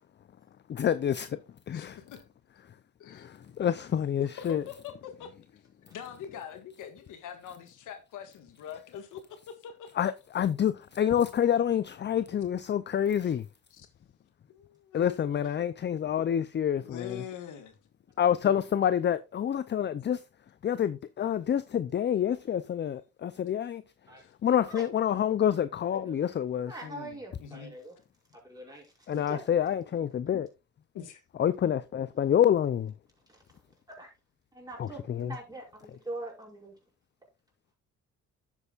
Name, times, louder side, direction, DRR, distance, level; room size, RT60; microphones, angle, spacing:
voice 1, 0.7-1.4 1.7-2.0 3.1-4.6 10.0-13.5 14.9-17.2 18.2-20.2 20.6-23.8 24.4-26.7 29.1-30.5 31.4-32.9 34.8-35.3, left 9 dB, 35° left, 0.5 m, -27 dB
voice 2, 1.7-2.2 3.0-3.3 4.2-5.3 5.9-9.9 13.2-13.3 13.7-13.9 14.5-15.2 16.8-17.7 24.2-24.3 26.8-27.7 30.9-31.2, left 8 dB, 85° left, 1.7 m, -43 dB
voice 3, 25.9-26.3 26.6-28.0 28.3-29.4 33.3-33.4 33.9-34.1 34.5-36.7, right 2 dB, 10° right, 5.6 m, -43 dB
10.5 x 8.3 x 2.4 m
cardioid pair, 90°, 30 cm